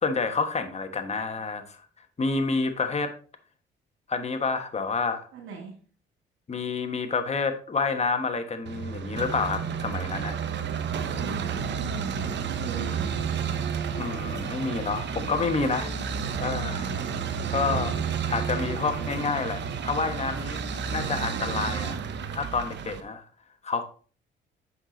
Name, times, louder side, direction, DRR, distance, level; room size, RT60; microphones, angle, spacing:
voice 1, 0.0-1.8 2.2-3.1 4.1-5.3 6.5-10.4 14.0-15.9 16.4-16.9 17.5-17.9 18.3-20.6 20.9-22.0 22.3-23.2 23.6-23.8, left 4 dB, 35° left, 7 dB, 1.3 m, -28 dB
voice 2, 5.3-5.8 11.1-13.6 15.8-16.1 17.6-18.1, right 5 dB, 85° right, 0 dB, 2.2 m, -41 dB
sound 1, 8.7-23.0, right 6 dB, 65° right, 1.0 m, -31 dB
7.8 x 5.9 x 3.9 m, 0.41 s
cardioid pair, 90°, 20 cm